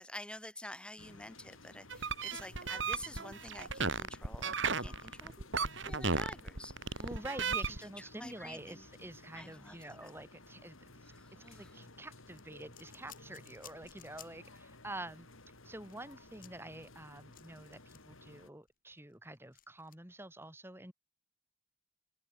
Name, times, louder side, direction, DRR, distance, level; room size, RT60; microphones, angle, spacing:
voice 1, 0.0-5.5 5.8-7.1 8.0-8.9 9.3-10.1 11.1-11.8, left 1 dB, 5° left, 7.8 m, -49 dB
sound 1, 1.0-18.5, left 2 dB, 90° left, 6.9 m, -56 dB
sound 2, 1.9-7.8, right 4 dB, 70° right, 3.5 m, -35 dB
voice 2, 7.0-15.3 15.6-20.9, right 1 dB, 10° right, 3.4 m, -48 dB
sound 3, 12.3-14.6 14.8-15.0 15.3-18.3 18.7-20.0, left 12 dB, 45° left, 5.8 m, -58 dB
open air
head